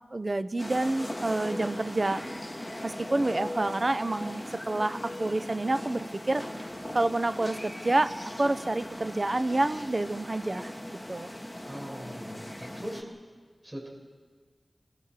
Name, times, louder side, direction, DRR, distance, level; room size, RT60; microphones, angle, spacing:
voice 1, 0.1-2.2 2.8-6.4 6.9-8.1 8.4-10.7 11.1-11.3, right 2 dB, 45° right, 13 dB, 0.8 m, -28 dB
sound 1, 0.6-13.0, left 1 dB, 10° left, 2.6 m, -39 dB
voice 2, 11.6-13.0 13.6-13.9, equal, 25° right, -2 dB, 7.6 m, -40 dB
27.0 x 21.0 x 5.1 m, 1.5 s
wide cardioid pair, 60°, 0 cm